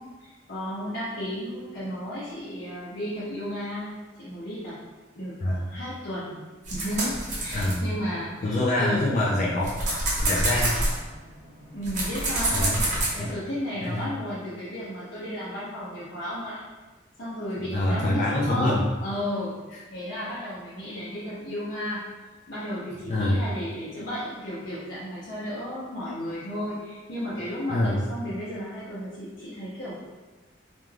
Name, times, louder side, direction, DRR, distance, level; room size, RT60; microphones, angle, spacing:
voice 1, 0.0-4.7 5.1-9.1 11.7-12.9 13.1-16.6 17.2-18.7 19.0-19.6 19.9-22.0 22.5-29.9, equal, 70° left, -11 dB, 0.7 m, -33 dB
sound 1, 6.6-8.5 9.0-13.1, right 1 dB, 40° right, 0.7 m, -27 dB
voice 2, 7.5-7.9 8.4-9.7 10.2-10.8 12.5-12.8 13.2-13.3 13.8-14.1 17.7-18.8 23.0-23.4 27.7-28.0, left 1 dB, 40° left, -5 dB, 0.3 m, -25 dB
2.5 x 2.2 x 3.2 m, 1.2 s
head